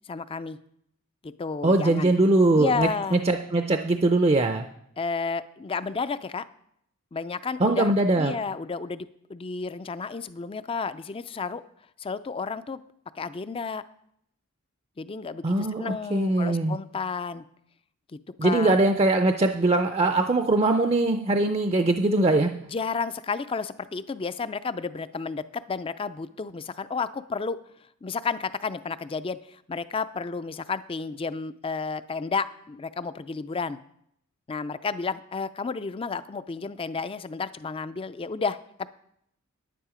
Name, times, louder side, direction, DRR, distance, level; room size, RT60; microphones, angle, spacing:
voice 1, 0.1-0.6 1.2-2.1 2.5-3.2 5.0-6.4 7.1-11.6 12.0-12.8 13.1-13.8 15.0-17.4 18.1-18.8 22.7-27.6 28.0-33.8 34.5-38.9, left 4 dB, 25° left, 14 dB, 0.4 m, -32 dB
voice 2, 1.6-4.7 7.6-8.3 15.4-16.8 18.4-22.5, right 2 dB, 25° right, 7 dB, 0.5 m, -22 dB
10.0 x 9.8 x 5.0 m, 0.73 s
head